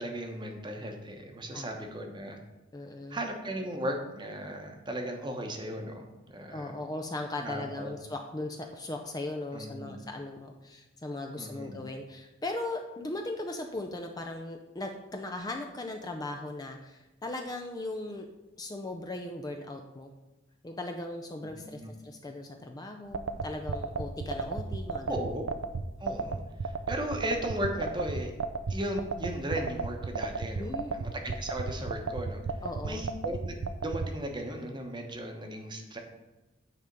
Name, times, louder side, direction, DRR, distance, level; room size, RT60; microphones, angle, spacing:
voice 1, 0.0-2.4 3.1-6.7 7.4-8.0 9.5-10.0 11.3-11.8 21.6-22.0 25.1-25.4 26.0-28.3 28.7-32.4 32.8-33.5 33.8-36.0, right 1 dB, 25° right, 3 dB, 0.9 m, -36 dB
voice 2, 1.5-1.8 2.7-3.2 6.5-18.3 18.6-20.1 20.6-25.2 30.6-31.0 32.6-33.0, left 2 dB, 20° left, 4 dB, 0.4 m, -38 dB
sound 1, 23.1-34.1, right 4 dB, 80° right, 0.5 m, -33 dB
9.2 x 3.5 x 5.2 m, 1.1 s
head